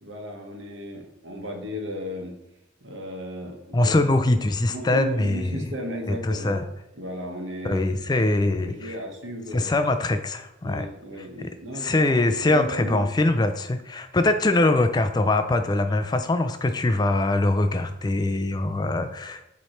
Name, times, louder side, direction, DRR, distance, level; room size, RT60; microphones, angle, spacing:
voice 1, 0.0-2.3 2.8-4.0 4.7-6.6 7.0-9.7 10.6-13.0, equal, 75° right, 2 dB, 1.2 m, -35 dB
voice 2, 3.7-5.7 6.1-6.7 7.6-9.0 9.5-10.9 11.2-19.4, left 2 dB, 20° left, 8 dB, 0.3 m, -23 dB
7.8 x 3.2 x 4.3 m, 0.93 s
head